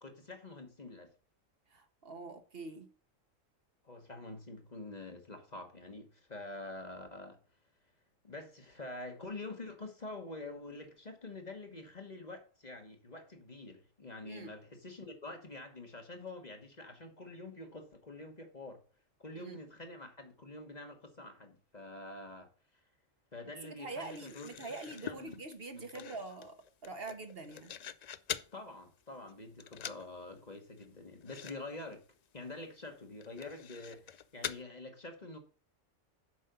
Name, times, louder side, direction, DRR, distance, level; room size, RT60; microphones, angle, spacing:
voice 1, 0.0-1.1 3.8-7.4 8.2-18.8 19.2-22.5 23.3-24.5 25.0-25.4 25.7-26.1 28.5-32.0 32.3-35.4, left 2 dB, 35° left, 1.4 m, -46 dB
voice 2, 1.7-2.9 14.2-14.5 19.3-19.6 23.8-26.5 26.8-27.7, right 3 dB, 50° right, 1.3 m, -44 dB
sound 1, 24.0-28.6 29.0-29.3 29.6-30.1 30.4-30.5 30.8-30.9 31.2-31.6 31.8-31.9 32.4-32.5 33.2-34.6, left 8 dB, 85° left, 0.3 m, -44 dB
7.6 x 5.4 x 6.7 m
omnidirectional pair, 1.3 m